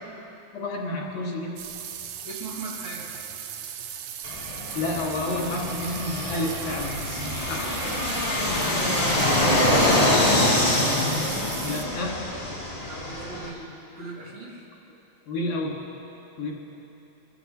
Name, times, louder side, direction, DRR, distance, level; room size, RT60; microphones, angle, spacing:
voice 1, 0.5-1.6 4.7-7.7 11.6-12.2 15.3-15.8 16.4-16.5, left 2 dB, 75° left, -3 dB, 3.9 m, -30 dB
sound 1, 1.6-11.8, right 9 dB, 75° right, 1.8 m, -37 dB
voice 2, 2.2-3.1 9.2-10.2 12.9-14.7, right 3 dB, 55° right, -6 dB, 3.9 m, -39 dB
Fixed-wing aircraft airplane, 4.2-13.5, left 1 dB, 30° left, 0.6 m, -25 dB
24.0 x 14.5 x 3.3 m, 2.9 s
omnidirectional pair, 3.7 m